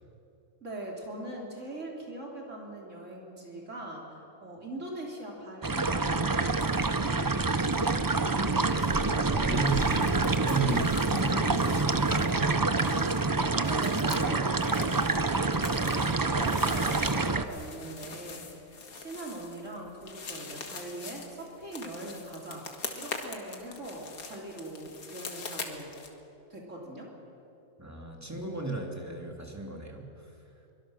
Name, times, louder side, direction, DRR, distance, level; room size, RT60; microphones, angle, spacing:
voice 1, 0.6-4.1 4.4-6.8 9.1-9.7 13.4-18.6 19.0-22.7 22.9-25.9 26.5-27.1, right 1 dB, 55° right, -2 dB, 3.6 m, -41 dB
sound 1, 5.6-17.4, right 3 dB, 30° right, 0.3 m, -27 dB
sound 2, 6.5-7.0 7.2-26.1, left 4 dB, 80° left, 2.2 m, -44 dB
voice 2, 9.4-9.8 10.3-12.6 27.8-30.1, right 3 dB, 10° right, 0 dB, 2.6 m, -35 dB
23.5 x 22.5 x 6.4 m, 2.8 s
omnidirectional pair, 1.5 m